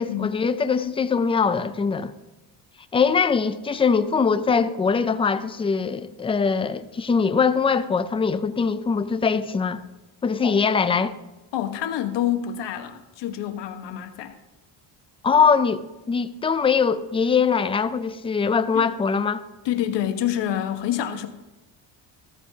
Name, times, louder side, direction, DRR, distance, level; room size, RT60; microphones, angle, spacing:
voice 1, 0.0-2.1 2.9-9.8 10.2-11.1 15.2-19.4, left 5 dB, 15° left, 0.3 m, -22 dB
voice 2, 11.5-14.4 18.7-18.9 19.6-21.3, left 11 dB, 70° left, 1.2 m, -27 dB
14.5 x 14.0 x 2.8 m
cardioid pair, 135°, 44 cm